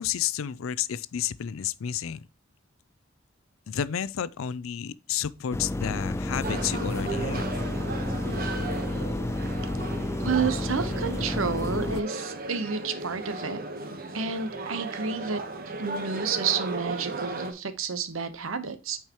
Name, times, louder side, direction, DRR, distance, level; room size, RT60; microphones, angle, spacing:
voice 1, 0.0-2.3 3.7-7.6, left 9 dB, 80° left, 0.4 m, -31 dB
sound 1, 5.5-12.0, left 1 dB, 15° left, 0.3 m, -30 dB
sound 2, 6.4-17.5, right 3 dB, 45° right, 1.1 m, -36 dB
voice 2, 10.2-13.6 14.1-15.4 15.8-19.0, right 5 dB, 80° right, 0.9 m, -30 dB
8.9 x 4.7 x 2.9 m
head